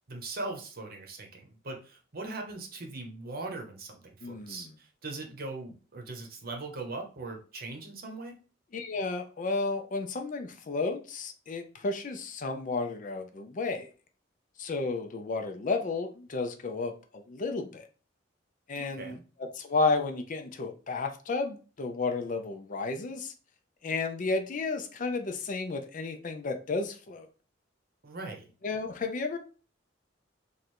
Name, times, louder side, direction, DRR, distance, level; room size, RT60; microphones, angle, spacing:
voice 1, 0.1-8.4 18.8-19.2 28.0-28.5, right 2 dB, 50° right, 3 dB, 0.9 m, -40 dB
voice 2, 4.2-4.7 8.7-13.9 14.6-17.8 18.7-23.3 23.8-27.3 28.6-29.4, left 3 dB, 45° left, 6 dB, 0.5 m, -32 dB
3.1 x 2.5 x 4.3 m, 0.36 s
head